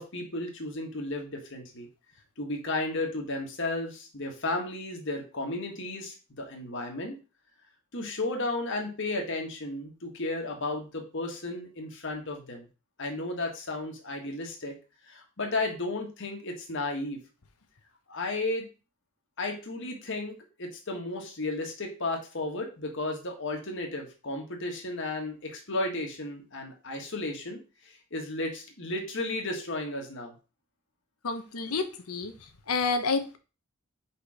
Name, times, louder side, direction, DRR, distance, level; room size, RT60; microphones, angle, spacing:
voice 1, 0.0-1.9 2.4-7.1 7.9-12.6 13.0-14.7 15.0-17.2 18.1-18.7 19.4-30.3, left 2 dB, 55° left, 2 dB, 1.6 m, -34 dB
voice 2, 31.2-32.3 32.7-33.4, left 4 dB, 90° left, 8 dB, 1.1 m, -29 dB
5.0 x 4.6 x 4.9 m, 0.33 s
head